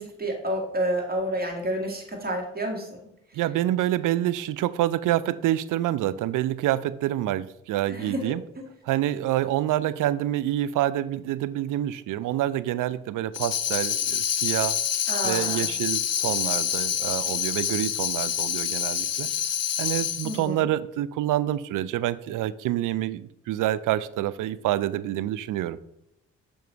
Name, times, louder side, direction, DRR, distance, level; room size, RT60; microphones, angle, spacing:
voice 1, 0.0-2.9 7.9-8.2 8.6-8.7 15.1-15.7 20.2-20.6, right 1 dB, 30° right, 1 dB, 1.9 m, -29 dB
voice 2, 3.3-8.4 8.8-14.8 15.2-19.3 19.8-25.8, right 13 dB, 70° right, 17 dB, 0.4 m, -27 dB
Tambourine, 13.3-20.4, left 10 dB, 50° left, 0.6 m, -27 dB
6.9 x 3.0 x 4.5 m, 0.82 s
supercardioid pair, 45°, 33 cm